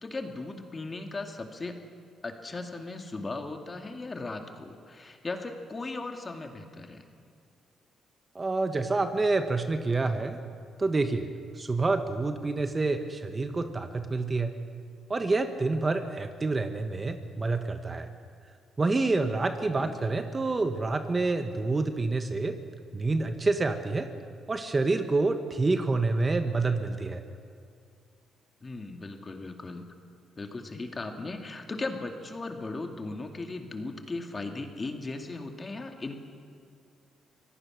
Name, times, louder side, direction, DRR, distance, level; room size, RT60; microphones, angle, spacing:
voice 1, 0.0-1.8 2.2-7.0 19.8-20.1 28.6-29.9 30.4-36.2, left 3 dB, 30° left, 4 dB, 2.3 m, -37 dB
voice 2, 8.3-10.4 10.8-11.3 11.6-14.5 15.1-18.1 18.8-22.5 22.9-24.1 24.5-27.2, right 3 dB, 25° right, 8 dB, 1.3 m, -27 dB
24.5 x 17.5 x 6.4 m, 2.4 s
cardioid pair, 90°, 0 cm